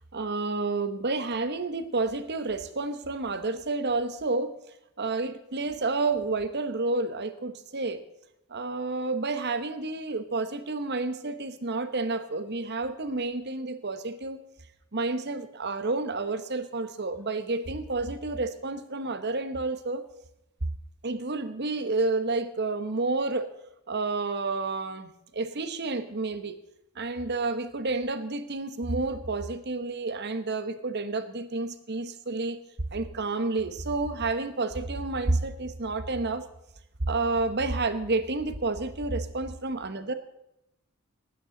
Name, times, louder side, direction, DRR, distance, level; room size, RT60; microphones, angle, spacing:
voice 1, 0.1-4.5 5.0-8.0 8.5-14.4 14.9-20.0 21.0-23.5 23.9-26.6 26.9-32.6 32.9-36.4 37.1-40.1, right 3 dB, 50° right, 11 dB, 1.1 m, -30 dB
19.0 x 9.4 x 3.9 m, 0.84 s
head